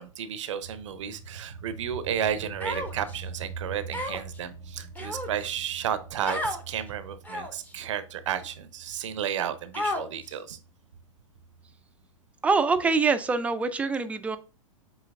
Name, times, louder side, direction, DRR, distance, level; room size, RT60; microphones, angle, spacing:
voice 1, 0.0-10.6, right 9 dB, 60° right, 12 dB, 0.6 m, -33 dB
sound 1, 0.6-11.7, right 4 dB, 85° left, 2.5 m, -44 dB
Human voice, 2.6-3.2 3.9-4.4 4.9-5.5 6.2-6.6 7.2-7.7 8.4-8.5 9.7-10.3, left 1 dB, 10° left, 0.8 m, -32 dB
voice 2, 12.4-14.4, right 4 dB, 10° right, 9 dB, 0.4 m, -24 dB
7.1 x 3.1 x 2.4 m, 0.35 s
figure-of-eight pair, 105°, 17 cm